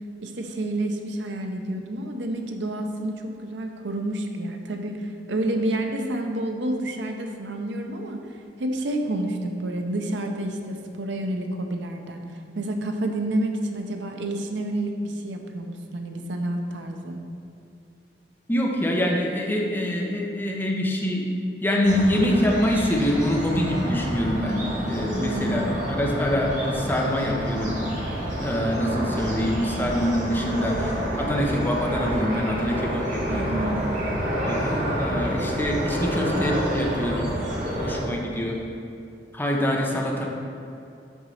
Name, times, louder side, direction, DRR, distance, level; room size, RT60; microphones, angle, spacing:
voice 1, 0.2-8.3 8.6-12.2 12.5-17.2 25.2-25.7 33.3-33.9, right 1 dB, 75° right, 4 dB, 0.6 m, -29 dB
voice 2, 18.5-21.3 21.6-27.8 28.4-33.5 34.4-37.3 37.8-38.6 39.3-40.3, equal, 10° left, -1 dB, 0.7 m, -25 dB
sound 1, 21.8-38.0, equal, 45° right, 1.6 m, -29 dB
6.0 x 4.0 x 5.6 m, 2.7 s
head